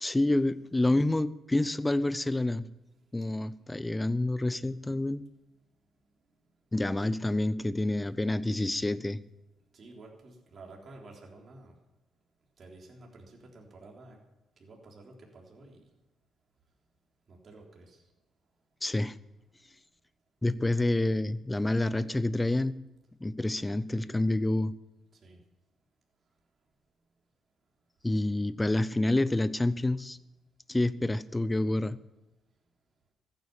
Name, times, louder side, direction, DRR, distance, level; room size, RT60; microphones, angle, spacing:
voice 1, 0.0-2.7 3.1-5.2 6.7-9.2 18.8-19.2 20.4-22.8 23.2-24.7 28.0-30.2 30.7-32.0, left 2 dB, 15° left, 16 dB, 0.7 m, -28 dB
voice 2, 9.7-11.7 12.6-14.2 14.6-15.8 17.3-18.0 25.2-25.4, right 2 dB, 45° right, -1 dB, 3.6 m, -51 dB
14.5 x 9.4 x 7.3 m, 1.0 s
cardioid pair, 90°, 0 cm